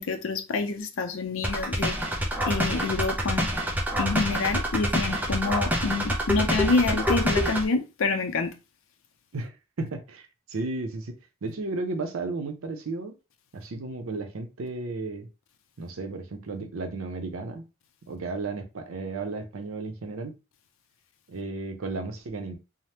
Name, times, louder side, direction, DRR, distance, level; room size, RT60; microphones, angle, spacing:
voice 1, 0.0-2.0 2.5-3.5 4.0-8.5, left 3 dB, 70° left, 0.5 m, -27 dB
sound 1, 1.4-7.7, equal, 10° right, 0.4 m, -26 dB
voice 2, 9.3-13.1 13.5-15.3 15.8-17.6 18.1-20.4 21.3-22.6, right 3 dB, 80° right, 0.6 m, -34 dB
3.2 x 2.0 x 2.8 m
head